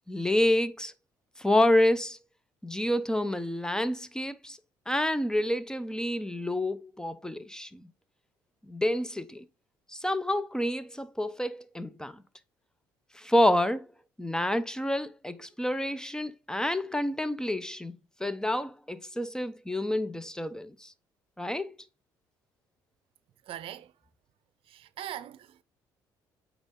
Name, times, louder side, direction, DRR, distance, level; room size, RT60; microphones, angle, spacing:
voice 1, 0.1-0.9 1.4-2.2 2.6-4.6 4.9-7.9 8.7-9.4 9.9-12.2 13.1-13.9 14.2-20.9 21.4-21.7, left 1 dB, 5° left, 0.7 m, -28 dB
voice 2, 23.4-23.9 24.7-25.6, right 11 dB, 60° right, 0.6 m, -41 dB
8.8 x 3.6 x 3.8 m
hypercardioid pair, 65°, 10 cm